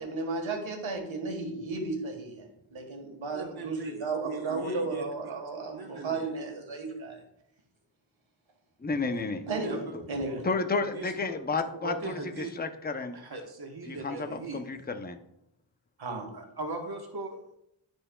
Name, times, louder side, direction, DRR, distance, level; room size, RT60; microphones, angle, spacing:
voice 1, 0.0-7.2 9.5-9.8 10.1-10.4 16.0-16.3, right 3 dB, 80° right, 3 dB, 1.7 m, -34 dB
voice 2, 3.3-5.0 5.7-6.3 9.4-10.0 10.8-11.3 11.8-12.5 13.1-14.6 16.1-17.4, right 3 dB, 50° right, 2 dB, 1.4 m, -39 dB
voice 3, 8.8-9.5 9.9-10.0 10.4-13.2 13.9-15.2, left 3 dB, 20° left, 7 dB, 0.7 m, -32 dB
13.0 x 4.5 x 2.3 m, 0.79 s
cardioid pair, 55°, 47 cm